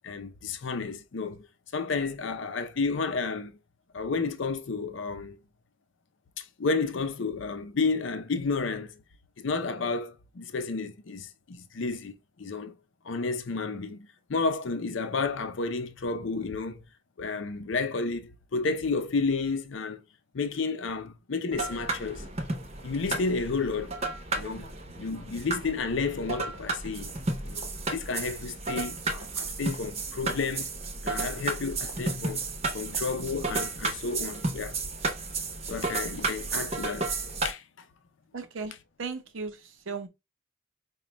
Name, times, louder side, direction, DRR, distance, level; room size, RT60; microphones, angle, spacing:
voice 1, 0.0-1.5 1.7-3.6 3.9-5.4 6.4-9.0 9.4-12.8 13.0-16.8 17.2-20.0 20.3-22.3 22.8-24.0 24.3-24.7 25.0-27.1 27.4-30.7 31.0-32.4 32.7-34.7 35.7-37.1 37.4-37.6, left 4 dB, 65° left, 0.5 m, -31 dB
sound 1, 21.5-37.5, right 3 dB, 35° right, 0.8 m, -33 dB
voice 2, 38.3-40.1, right 4 dB, 70° right, 0.7 m, -37 dB
5.1 x 2.2 x 3.0 m
head